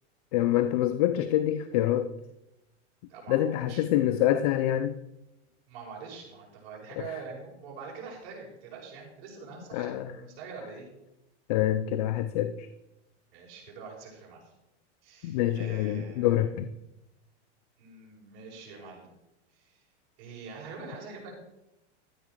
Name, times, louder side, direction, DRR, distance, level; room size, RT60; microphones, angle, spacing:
voice 1, 0.3-2.1 3.3-5.0 9.7-10.1 11.5-12.7 15.2-16.7, left 12 dB, 35° left, 0.4 m, -26 dB
voice 2, 3.1-3.8 5.7-10.9 13.3-14.5 15.0-16.5 17.8-19.1 19.5-19.8 20.2-21.3, right 5 dB, 50° right, 5.5 m, -44 dB
13.0 x 8.9 x 5.0 m
supercardioid pair, 165°, 36 cm